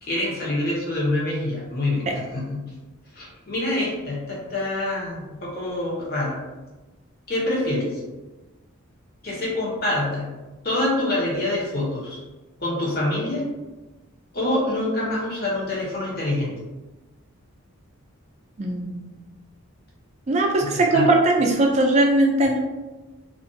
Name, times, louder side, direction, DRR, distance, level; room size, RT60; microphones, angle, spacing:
voice 1, 0.0-2.6 3.1-6.4 7.3-8.0 9.2-10.3 10.6-12.2 12.6-13.4 14.3-16.5 20.6-21.1, left 1 dB, 45° left, -6 dB, 0.8 m, -26 dB
voice 2, 18.6-19.1 20.3-22.6, right 2 dB, 30° right, 1 dB, 0.3 m, -20 dB
2.4 x 2.2 x 2.6 m, 1.2 s
head